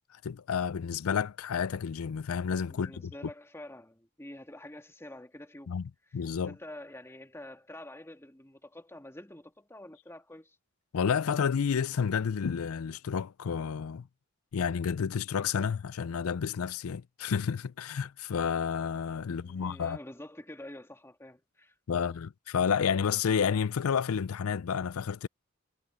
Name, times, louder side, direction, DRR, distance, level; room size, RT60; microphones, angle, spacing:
voice 1, 0.2-3.0 5.7-5.8 6.1-6.5 10.9-14.1 14.5-20.0 21.9-25.3, left 7 dB, 75° left, 0.4 m, -30 dB
voice 2, 2.7-5.8 6.1-6.2 6.4-10.6 19.2-22.2, left 1 dB, 10° left, 2.1 m, -47 dB
head